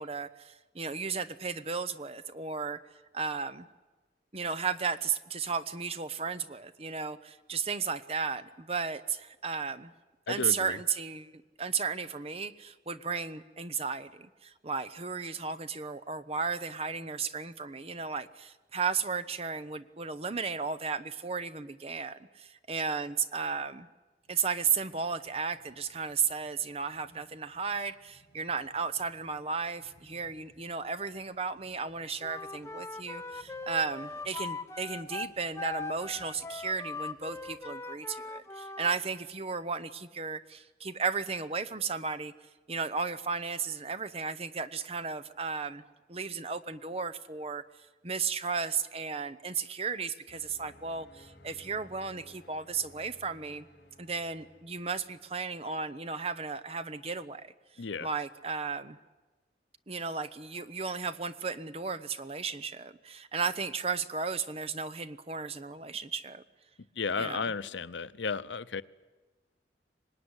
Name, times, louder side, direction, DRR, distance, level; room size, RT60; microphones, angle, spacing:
voice 1, 0.0-2.8 3.1-3.7 4.3-9.9 10.3-23.9 24.3-42.3 42.7-45.8 46.1-53.7 54.0-57.5 57.7-59.0 59.9-66.4 67.2-67.4, right 5 dB, 35° right, 0.9 m, -34 dB
voice 2, 10.3-10.8 57.8-58.1 66.9-68.8, left 5 dB, 85° left, 0.8 m, -33 dB
sound 1, 24.2-37.9, left 1 dB, 50° left, 3.9 m, -65 dB
Wind instrument woodwind instrument, 32.2-39.0, left 3 dB, 15° left, 0.9 m, -40 dB
sound 2, 50.3-55.4, left 1 dB, 70° left, 3.6 m, -57 dB
25.5 x 19.5 x 9.8 m
head